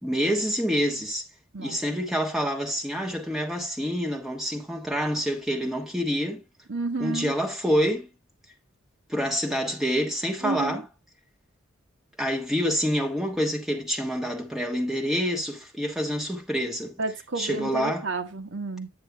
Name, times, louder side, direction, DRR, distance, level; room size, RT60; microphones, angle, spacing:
voice 1, 0.0-1.2 1.6-6.4 7.0-8.1 9.1-10.9 12.2-17.0 17.4-18.1, equal, ahead, 1.4 m, -27 dB
voice 2, 6.7-7.3 10.4-10.8 17.0-18.9, right 3 dB, 65° right, 1.2 m, -31 dB
9.4 x 6.6 x 3.3 m
head